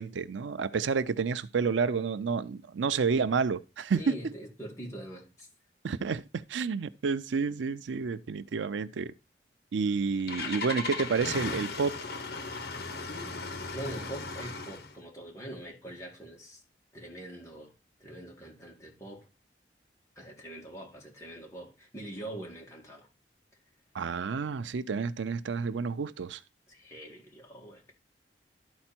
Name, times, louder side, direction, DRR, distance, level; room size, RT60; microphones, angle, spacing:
voice 1, 0.0-4.3 5.8-9.1 9.7-12.0 23.9-26.4, right 5 dB, 90° right, 0.5 m, -30 dB
voice 2, 3.9-5.5 13.1-13.4 13.7-16.6 16.9-17.7 18.0-19.3 20.2-23.1 26.7-27.9, right 1 dB, 15° left, 2.2 m, -43 dB
Engine starting, 9.8-14.9, left 3 dB, 60° left, 1.1 m, -37 dB
12.0 x 4.4 x 4.4 m
head